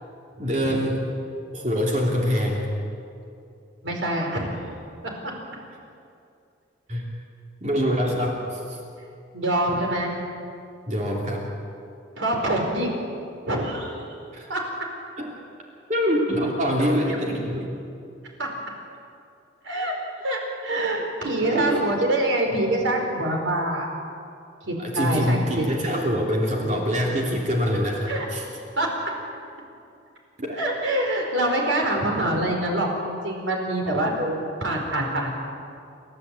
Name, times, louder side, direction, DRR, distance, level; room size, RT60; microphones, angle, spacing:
voice 1, 0.4-1.0 1.5-2.7 6.9-7.1 7.6-8.8 10.9-11.5 14.3-14.5 15.2-15.3 15.9-17.7 21.4-21.8 24.8-28.4 30.4-30.6 34.0-34.2, equal, 40° right, -1 dB, 3.0 m, -25 dB
voice 2, 3.8-4.6 9.3-10.1 12.2-12.9 13.5-14.0 14.5-14.6 18.4-18.5 19.6-19.9 20.2-23.9 24.7-25.6 26.7-26.8 28.1-28.2 28.8-28.9 30.6-35.3, right 1 dB, 80° right, 1 dB, 4.8 m, -25 dB
30.0 x 12.5 x 8.4 m, 2.5 s
head